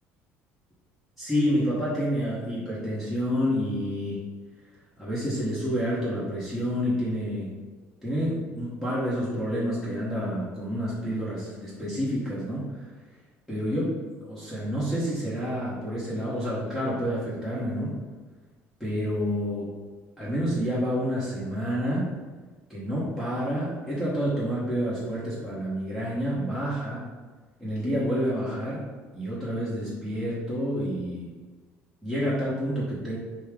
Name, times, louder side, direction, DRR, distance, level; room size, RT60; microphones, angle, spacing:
voice 1, 1.2-4.2 5.0-7.5 8.0-12.7 13.5-14.0 14.3-17.9 18.8-19.7 20.2-22.1 22.7-27.0 27.6-28.8 29.1-31.3 32.0-33.2, equal, ahead, -10 dB, 1.3 m, -28 dB
5.4 x 2.2 x 3.6 m, 1.4 s
cardioid pair, 100°, 6 cm